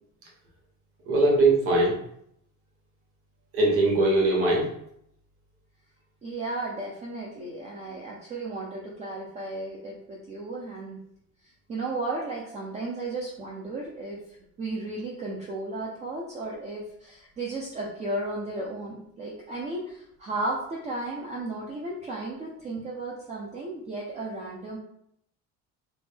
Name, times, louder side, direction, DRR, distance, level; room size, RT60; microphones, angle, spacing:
voice 1, 1.1-2.0 3.5-4.7, right 2 dB, 50° right, -3 dB, 1.1 m, -21 dB
voice 2, 6.2-11.0 11.7-24.8, right 2 dB, 25° right, -3 dB, 0.4 m, -34 dB
3.3 x 2.1 x 3.3 m, 0.73 s
cardioid pair, 165°, 30 cm